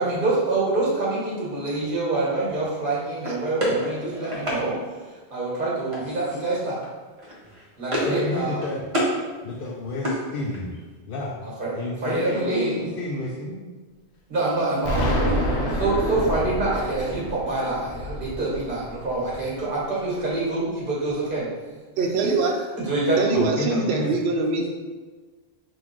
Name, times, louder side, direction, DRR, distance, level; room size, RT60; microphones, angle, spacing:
voice 1, 0.0-4.8 5.3-6.8 7.8-8.6 11.4-11.7 12.0-12.7 14.3-21.5 22.2-22.3 22.8-23.4, right 2 dB, 55° right, -6 dB, 1.6 m, -26 dB
sound 1, 3.2-4.6 5.9-6.3 6.6-6.9 7.2-8.3 8.5-9.2 9.5-10.8, equal, 30° right, 1.0 m, -28 dB
voice 2, 8.0-8.8 9.4-10.8 11.1-11.4 11.7-13.7 23.3-24.1, left 2 dB, 65° left, -3 dB, 0.7 m, -30 dB
Explosion, 14.8-19.7, equal, 90° left, 1.0 m, -28 dB
voice 3, 22.0-22.5 23.2-24.7, right 3 dB, 75° right, 2 dB, 0.8 m, -23 dB
3.8 x 2.6 x 4.5 m, 1.3 s
omnidirectional pair, 1.1 m